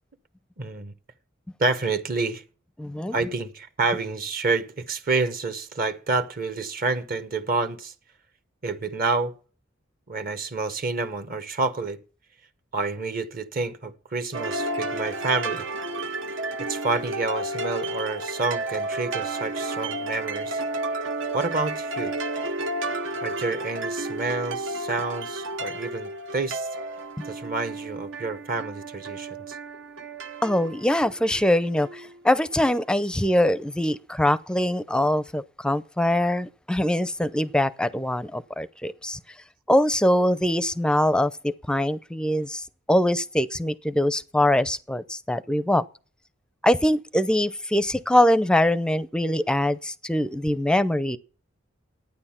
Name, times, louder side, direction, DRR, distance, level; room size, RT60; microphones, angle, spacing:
voice 1, 0.6-0.9 1.6-2.4 3.1-7.9 8.6-9.3 10.1-12.0 12.7-15.7 16.6-20.6 21.3-22.1 23.2-26.7 27.2-29.6, right 3 dB, 45° right, 1.0 m, -28 dB
voice 2, 2.8-3.2 30.4-39.2 39.7-45.8 46.6-51.2, left 1 dB, 5° left, 0.5 m, -23 dB
sound 1, 14.3-32.2, right 2 dB, 80° right, 0.9 m, -32 dB
12.0 x 9.4 x 5.8 m
head